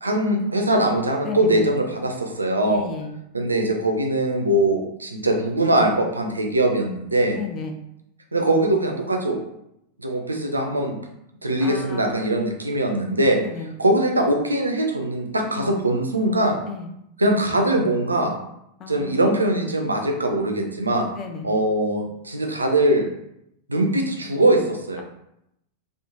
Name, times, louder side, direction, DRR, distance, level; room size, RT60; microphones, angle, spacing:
voice 1, 0.0-2.8 3.3-7.4 8.3-9.4 10.0-10.9 11.4-13.4 13.8-16.6 17.2-18.3 18.9-21.1 21.4-23.1 23.7-25.0, right 1 dB, 80° right, 3 dB, 0.4 m, -21 dB
voice 2, 1.2-1.7 2.7-3.1 7.4-7.8 11.6-12.2 13.4-13.7 15.5-15.7 16.7-16.9 18.8-19.2 21.2-21.5, left 5 dB, 30° left, 4 dB, 0.3 m, -33 dB
3.0 x 2.0 x 2.4 m, 0.80 s
figure-of-eight pair, 90°, 0 cm